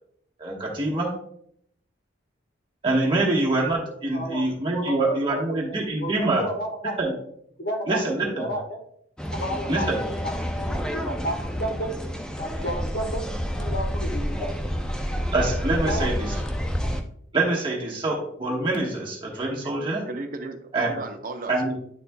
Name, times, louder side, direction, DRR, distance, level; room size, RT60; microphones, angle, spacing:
voice 1, 0.4-1.1 2.8-6.4 7.0-7.1 7.9-8.5 9.7-10.0 15.3-16.4 17.3-20.0 20.7-20.9 21.5-21.7, right 2 dB, 25° right, -3 dB, 1.2 m, -25 dB
voice 2, 4.1-7.0 7.6-8.0 8.3-8.8 9.2-11.9 12.4-13.2 13.5-14.5 15.8-16.1, equal, 55° left, 1 dB, 1.3 m, -32 dB
sound 1, 9.2-17.0, equal, 5° left, 0.4 m, -29 dB
voice 3, 19.3-19.7 20.1-21.8, right 2 dB, 45° right, 5 dB, 0.6 m, -35 dB
10.5 x 4.2 x 2.2 m, 0.69 s
head